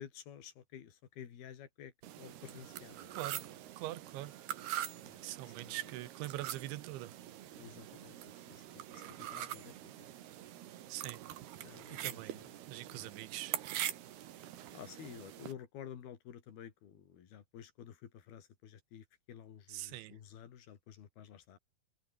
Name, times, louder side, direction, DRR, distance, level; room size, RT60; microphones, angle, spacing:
voice 1, 0.0-1.9 2.2-3.2 5.0-5.8 7.5-10.1 11.6-12.5 12.9-13.1 14.7-21.6, left 9 dB, 60° left, 4.4 m, -52 dB
sound 1, 2.0-15.5, right 12 dB, 65° right, 3.5 m, -44 dB
voice 2, 3.8-4.4 5.2-7.1 10.9-11.2 11.9-13.6 19.7-20.2, right 16 dB, 85° right, 3.5 m, -43 dB
omnidirectional pair, 5.1 m